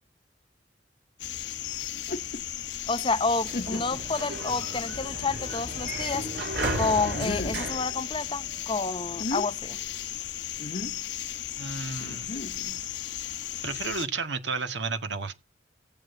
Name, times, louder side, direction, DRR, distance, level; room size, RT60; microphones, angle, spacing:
sound 1, 1.2-14.1, left 12 dB, 80° left, 1.1 m, -36 dB
sound 2, 2.0-2.4 3.0-3.1 3.5-4.1 4.7-4.8 7.1-7.7 9.0-9.5 10.6-11.0 12.0-12.8, left 2 dB, 50° left, 0.9 m, -35 dB
voice 1, 2.9-6.3 6.7-9.8, left 3 dB, 30° left, 1.0 m, -29 dB
Sliding door, 3.2-8.8, right 2 dB, 70° right, 3.4 m, -35 dB
voice 2, 11.6-12.3 13.6-15.3, right 4 dB, 85° right, 1.9 m, -32 dB
18.5 x 7.8 x 2.8 m
head